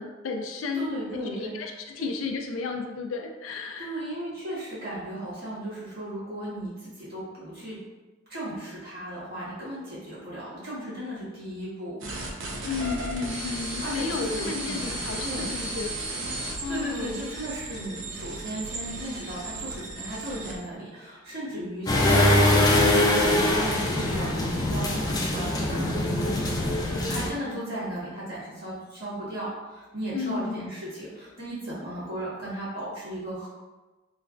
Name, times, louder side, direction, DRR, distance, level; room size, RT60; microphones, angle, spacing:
voice 1, 0.0-1.0 1.3-4.0 12.6-16.0 16.6-17.2 30.1-30.7, left 4 dB, 85° left, 3 dB, 0.4 m, -33 dB
voice 2, 0.7-1.5 3.8-7.8 8.3-12.0 13.8-14.9 15.2-15.5 16.7-26.5 27.0-33.5, right 1 dB, 50° right, -9 dB, 1.4 m, -35 dB
sound 1, 12.0-20.6, right 2 dB, 70° right, 0.5 m, -35 dB
sound 2, 21.9-27.3, left 1 dB, 20° left, 0.4 m, -23 dB
3.1 x 2.2 x 2.4 m, 1.2 s
head